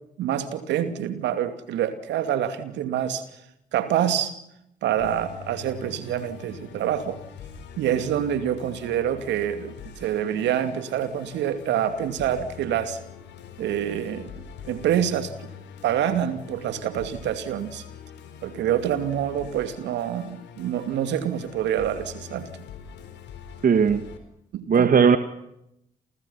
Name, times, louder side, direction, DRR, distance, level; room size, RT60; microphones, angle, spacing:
voice 1, 0.2-3.2 3.7-4.3 4.8-7.2 7.8-13.0 13.6-14.3 14.6-15.3 15.8-17.8 18.4-22.5 24.5-24.9, right 10 dB, 70° right, 2.7 m, -26 dB
Musical instrument, 5.0-24.2, left 8 dB, 70° left, 4.1 m, -44 dB
voice 2, 23.6-24.1 24.7-25.2, right 6 dB, 50° right, 1.8 m, -17 dB
29.5 x 28.5 x 5.8 m
hypercardioid pair, 40°, 19 cm